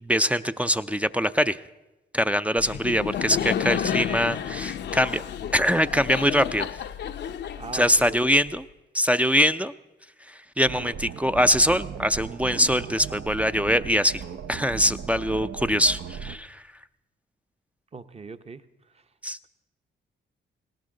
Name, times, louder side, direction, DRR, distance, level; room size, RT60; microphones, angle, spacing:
voice 1, 0.0-1.6 2.1-5.2 5.5-6.7 7.7-8.7 8.9-9.7 10.3-14.2 14.5-16.6 19.2-19.4, equal, 5° right, 11 dB, 0.4 m, -23 dB
Laughter, 2.6-8.4, left 9 dB, 65° left, 0.6 m, -31 dB
voice 2, 7.6-8.2 17.9-18.6, right 5 dB, 30° right, 10 dB, 0.8 m, -39 dB
sound 1, 10.6-16.4, right 7 dB, 70° right, 0.7 m, -37 dB
19.0 x 17.5 x 3.9 m, 1.0 s
cardioid pair, 70°, 20 cm